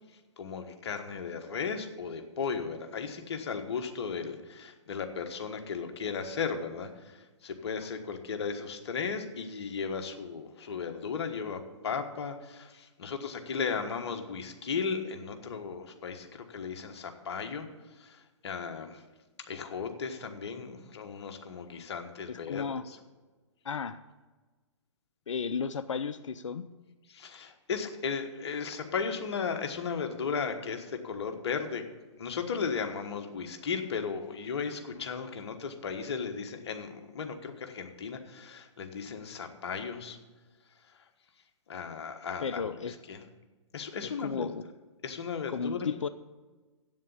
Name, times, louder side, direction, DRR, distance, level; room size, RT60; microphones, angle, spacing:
voice 1, 0.4-17.7 18.0-19.0 19.5-23.0 27.1-31.8 32.2-40.2 41.7-42.7 43.1-43.2 43.7-44.5 45.0-45.9, left 5 dB, 60° left, 6 dB, 1.4 m, -36 dB
voice 2, 22.3-22.8 23.6-24.0 25.3-26.7 42.4-42.9 44.0-44.6 45.5-46.1, left 6 dB, 80° left, 13 dB, 0.5 m, -34 dB
8.1 x 7.3 x 8.4 m, 1.3 s
figure-of-eight pair, 125°, 16 cm